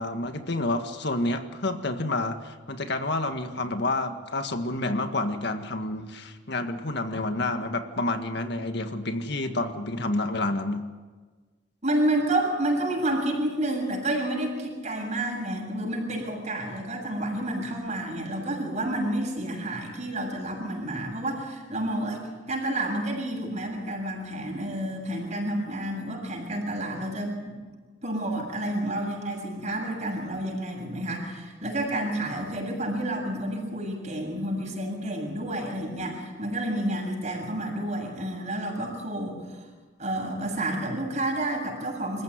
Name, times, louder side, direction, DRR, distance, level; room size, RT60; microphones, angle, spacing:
voice 1, 0.0-10.9, left 2 dB, 60° left, 7 dB, 1.8 m, -29 dB
voice 2, 11.8-22.2 22.5-27.6 28.0-39.6 40.0-42.2, right 1 dB, 40° right, 0 dB, 7.2 m, -30 dB
27.0 x 15.0 x 9.5 m, 1.4 s
head